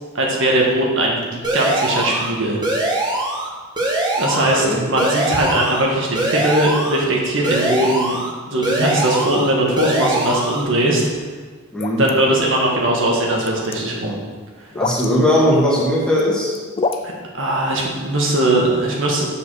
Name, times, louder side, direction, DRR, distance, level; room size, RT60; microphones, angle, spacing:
voice 1, 0.1-2.6 4.2-8.2 8.5-11.0 12.0-14.1 15.4-15.5 17.0-19.2, right 1 dB, 60° right, -2 dB, 1.6 m, -19 dB
sound 1, 1.4-2.3 2.6-3.5 3.8-4.6 5.0-5.8 6.2-7.0 7.4-8.3 8.6-9.5 9.8-10.6, right 2 dB, 20° right, 1.3 m, -22 dB
voice 2, 4.3-4.8 11.7-12.0 14.8-16.5, left 1 dB, 5° left, -6 dB, 1.7 m, -18 dB
sound 2, 11.8-12.1 13.3-13.8 14.7-15.1 16.0-16.2 16.6-17.0, left 4 dB, 25° left, 0.3 m, -24 dB
7.3 x 5.4 x 6.3 m, 1.4 s
head